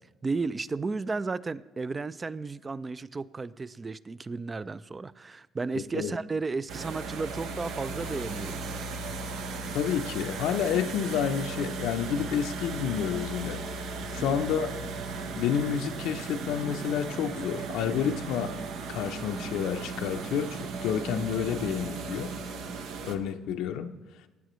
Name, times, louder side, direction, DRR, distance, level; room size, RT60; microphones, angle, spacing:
voice 1, 0.2-8.9 14.0-14.4, right 4 dB, 25° right, 17 dB, 0.3 m, -34 dB
sound 1, 6.7-23.2, right 4 dB, 75° right, 0.9 m, -36 dB
voice 2, 9.7-13.8 14.1-14.7 15.4-18.6 18.9-22.3 23.0-23.9, left 8 dB, 80° left, 7 dB, 0.6 m, -29 dB
15.5 x 9.2 x 3.1 m, 1.2 s
cardioid pair, 110°, 0 cm